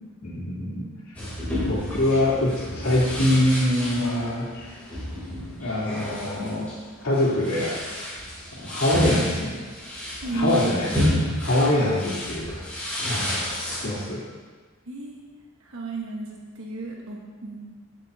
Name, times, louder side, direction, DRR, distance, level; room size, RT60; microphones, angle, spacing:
voice 1, 0.2-0.8 1.6-4.8 5.6-6.7 7.0-7.7 8.6-9.6 10.3-11.1 11.4-12.6 13.0-13.4 13.8-14.2, left 1 dB, 65° left, -8 dB, 3.2 m, -24 dB
sound 1, 1.1-14.1, left 1 dB, 5° left, 3.2 m, -30 dB
voice 2, 10.2-10.8 14.8-15.2 15.6-17.6, right 4 dB, 60° right, -1 dB, 1.2 m, -32 dB
15.5 x 7.2 x 2.8 m, 1.4 s
head